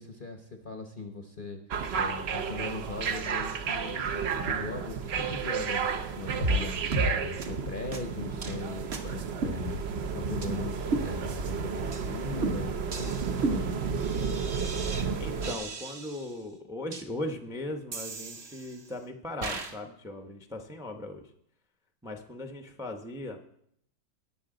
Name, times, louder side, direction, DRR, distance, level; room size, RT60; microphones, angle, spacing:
voice 1, 0.0-1.6 1.9-13.7, left 3 dB, 45° left, 5 dB, 0.7 m, -39 dB
sound 1, 1.7-15.6, right 6 dB, 70° right, 0.6 m, -32 dB
sound 2, 6.4-6.6 6.9-7.1 7.4-7.5 7.9-8.0 8.4-8.6 8.9-9.0 9.4-10.1 10.4-10.5 10.9-11.5 11.9-12.1 12.4-15.1 15.4-16.3 16.9-17.0 17.9-18.9 19.4-19.7, right 2 dB, 40° right, 1.1 m, -33 dB
voice 2, 15.2-21.3 22.0-23.4, left 1 dB, 5° right, 5 dB, 0.3 m, -38 dB
19.0 x 6.9 x 3.8 m, 0.71 s
omnidirectional pair, 2.0 m